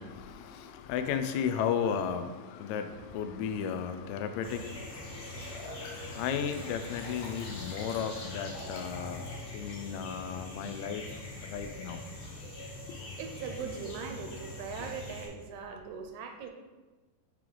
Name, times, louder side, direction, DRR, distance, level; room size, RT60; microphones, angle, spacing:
voice 1, 0.0-9.3 9.5-11.1 11.4-12.0, left 7 dB, 85° left, 8 dB, 1.6 m, -34 dB
sound 1, 4.4-15.3, left 2 dB, 50° left, 1.9 m, -43 dB
Liquid, 5.2-9.4 9.9-10.0, left 1 dB, 70° left, 2.5 m, -49 dB
voice 2, 13.2-16.5, right 6 dB, 80° right, 4 dB, 1.8 m, -40 dB
8.9 x 3.3 x 3.8 m, 1.2 s
omnidirectional pair, 3.8 m